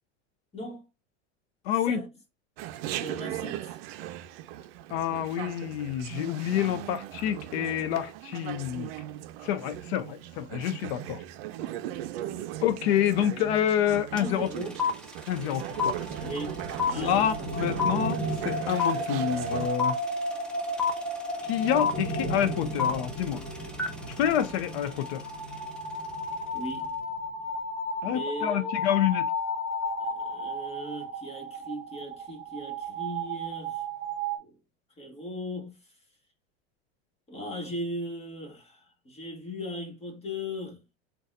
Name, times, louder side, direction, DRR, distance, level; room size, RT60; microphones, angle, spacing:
voice 1, 1.7-2.0 4.9-8.9 9.4-11.2 12.6-14.5 15.3-16.0 16.9-20.0 21.4-23.4 24.2-25.2 28.0-29.3, left 10 dB, 65° left, 0.5 m, -28 dB
Chatter, 2.6-19.7, right 13 dB, 60° right, 0.5 m, -38 dB
voice 2, 2.9-3.8 6.4-6.8 11.6-12.6 14.1-14.7 16.2-17.3 26.5-26.9 28.0-28.9 30.0-33.8 34.4-34.5 35.0-35.9 37.3-40.8, equal, 20° left, 1.4 m, -38 dB
sound 1, 14.2-14.3 14.5-25.6, left 6 dB, 5° left, 0.6 m, -30 dB
sound 2, 15.7-34.4, equal, 15° right, 1.6 m, -34 dB
3.9 x 2.3 x 2.5 m
supercardioid pair, 130°, 33 cm